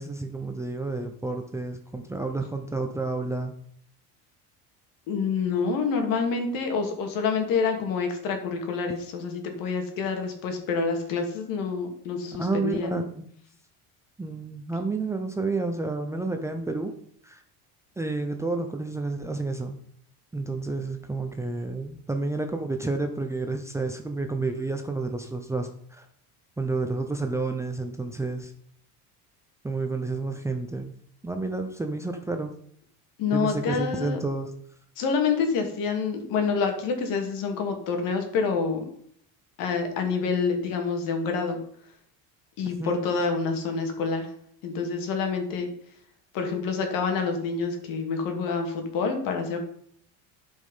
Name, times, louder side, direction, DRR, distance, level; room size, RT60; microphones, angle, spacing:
voice 1, 0.0-3.5 12.4-13.3 14.2-16.9 17.2-17.4 18.0-19.8 20.3-26.1 26.6-28.5 29.6-30.9 31.2-32.5 33.3-34.5 42.8-43.0, right 3 dB, 10° right, 4 dB, 0.6 m, -30 dB
voice 2, 5.1-13.0 33.2-34.2 35.0-38.9 39.6-41.6 42.6-44.3 44.6-45.7 46.3-49.6, left 5 dB, 60° left, 4 dB, 2.3 m, -27 dB
11.5 x 5.4 x 5.5 m, 0.64 s
cardioid pair, 150°, 37 cm